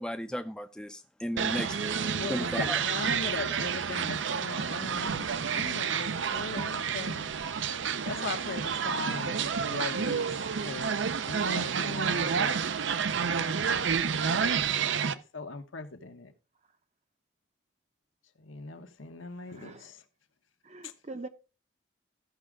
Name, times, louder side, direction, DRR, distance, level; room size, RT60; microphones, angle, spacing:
voice 1, 0.0-1.7 2.3-2.8, equal, 5° left, 0.5 m, -35 dB
sound 1, 1.4-15.1, right 6 dB, 70° right, 0.6 m, -30 dB
voice 2, 1.5-2.9 19.5-19.9 20.6-21.3, right 2 dB, 35° right, 0.7 m, -41 dB
voice 3, 2.2-7.3 7.7-12.8 13.4-13.5 14.3-14.7 15.1-16.3 18.4-20.0 20.8-20.9, left 3 dB, 80° left, 1.2 m, -40 dB
15.0 x 6.2 x 3.6 m
head